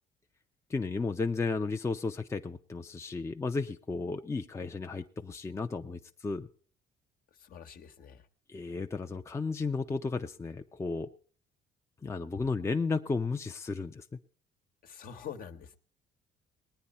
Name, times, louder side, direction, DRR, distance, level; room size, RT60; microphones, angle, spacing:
voice 1, 0.7-6.5 8.5-11.1 12.0-14.0, left 4 dB, 15° left, 5 dB, 0.6 m, -33 dB
voice 2, 7.3-8.3 14.8-15.8, left 8 dB, 60° left, 7 dB, 1.3 m, -45 dB
19.0 x 9.8 x 4.2 m, 0.43 s
cardioid pair, 110°, 17 cm